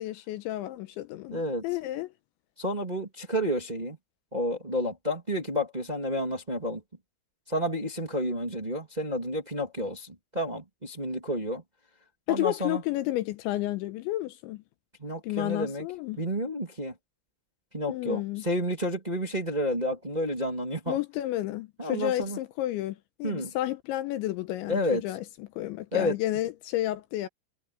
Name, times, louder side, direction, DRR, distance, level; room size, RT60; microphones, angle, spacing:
voice 1, 0.0-2.1 12.3-14.6 15.2-16.2 17.9-18.4 20.9-27.3, left 15 dB, 80° left, 2.9 m, -31 dB
voice 2, 1.3-1.6 2.6-4.0 4.3-6.8 7.5-11.6 12.3-12.8 15.0-15.8 16.2-16.9 17.7-21.0 21.8-22.4 23.2-23.5 24.7-25.0 25.9-26.1, equal, 15° right, 1.4 m, -30 dB
omnidirectional pair, 5.8 m